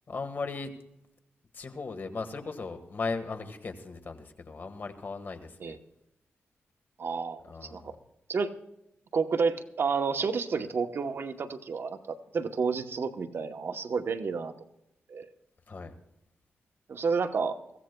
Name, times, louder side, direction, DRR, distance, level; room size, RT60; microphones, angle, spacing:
voice 1, 0.1-0.7 1.5-5.8 7.4-7.9 15.7-15.9, left 4 dB, 45° left, 8 dB, 1.5 m, -37 dB
voice 2, 7.0-7.9 8.3-8.5 9.1-14.5 15.1-15.3 16.9-17.6, right 5 dB, 60° right, 7 dB, 0.9 m, -30 dB
22.5 x 16.0 x 2.3 m, 0.83 s
wide cardioid pair, 110°, 5 cm